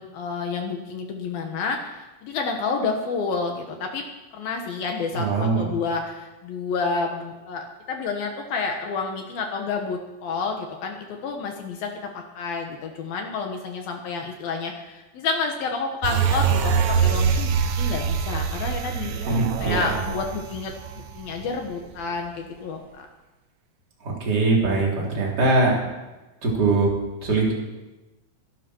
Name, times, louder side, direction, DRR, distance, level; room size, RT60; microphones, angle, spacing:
voice 1, 0.0-4.0 4.3-11.9 12.3-20.7 21.1-23.1, left 4 dB, 70° left, 3 dB, 2.3 m, -29 dB
voice 2, 5.1-5.7 19.3-19.9 24.0-25.8 26.4-26.9 27.2-27.5, right 3 dB, 20° right, -3 dB, 3.6 m, -22 dB
sound 1, 16.0-21.7 22.0-22.1, right 6 dB, 80° right, 3.8 m, -24 dB
23.0 x 12.0 x 4.6 m, 1.1 s
omnidirectional pair, 5.9 m